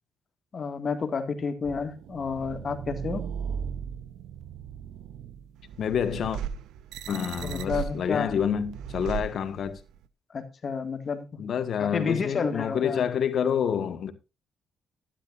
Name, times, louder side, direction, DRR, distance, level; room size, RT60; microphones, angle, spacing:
voice 1, 0.5-3.2 7.4-8.4 10.3-11.4 11.8-13.1, left 5 dB, 45° left, 1.9 m, -30 dB
sound 1, 1.6-10.0, right 8 dB, 85° right, 0.7 m, -37 dB
voice 2, 5.8-6.4 7.1-9.8 11.4-14.1, left 8 dB, 60° left, 1.5 m, -28 dB
12.5 x 11.5 x 2.6 m
cardioid pair, 90°, 0 cm